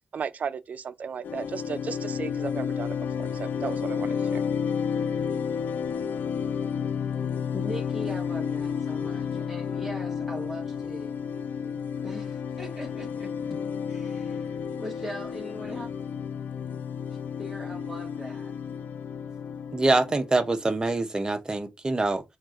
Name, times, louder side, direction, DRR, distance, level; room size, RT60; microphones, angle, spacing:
voice 1, 0.1-4.4, right 6 dB, 60° right, 0.4 m, -35 dB
sound 1, 1.2-20.8, left 7 dB, 80° left, 0.4 m, -31 dB
voice 2, 7.5-11.2 11.6-13.6 13.9-15.9 17.1-18.5, equal, ahead, 1.2 m, -40 dB
voice 3, 19.7-22.2, right 2 dB, 25° right, 0.7 m, -25 dB
4.3 x 2.4 x 2.4 m
cardioid pair, 80°, 3 cm